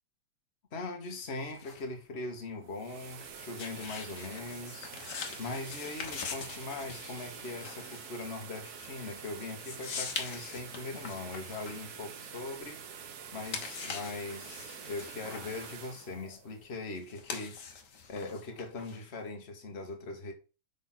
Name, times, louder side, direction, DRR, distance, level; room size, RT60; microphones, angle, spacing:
voice 1, 0.7-4.9 5.4-12.8 13.3-17.6 18.1-20.3, left 3 dB, 30° left, 1.7 m, -40 dB
sound 1, 1.1-12.8 13.2-19.3, left 5 dB, 55° left, 1.8 m, -44 dB
sound 2, 2.5-17.4, right 7 dB, 55° right, 1.2 m, -47 dB
6.4 x 5.1 x 5.9 m
omnidirectional pair, 2.4 m